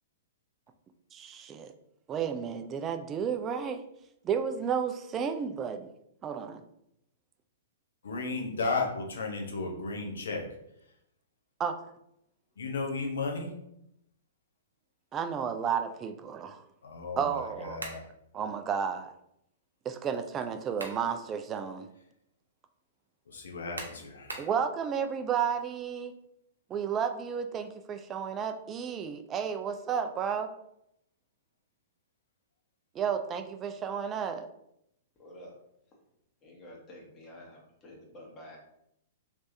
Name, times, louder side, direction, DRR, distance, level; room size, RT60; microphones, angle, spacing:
voice 1, 1.1-1.7 2.1-3.8 4.2-5.9 6.2-6.6 11.6-11.8 15.1-16.6 17.2-17.8 18.3-19.1 19.8-21.9 24.4-26.2 26.7-30.5 32.9-34.5, right 7 dB, 25° right, 8 dB, 0.4 m, -32 dB
voice 2, 8.0-10.5 12.6-13.5 16.8-18.0 23.3-24.3, left 3 dB, 75° left, 0 dB, 0.9 m, -34 dB
sound 1, 17.8-18.1 20.4-21.1 21.6-21.7 23.8-24.6, right 2 dB, 90° right, 0.7 m, -41 dB
voice 3, 35.2-35.5 36.4-38.6, left 1 dB, 25° left, -1 dB, 1.2 m, -49 dB
3.2 x 3.2 x 2.7 m, 0.78 s
hypercardioid pair, 115°, 0 cm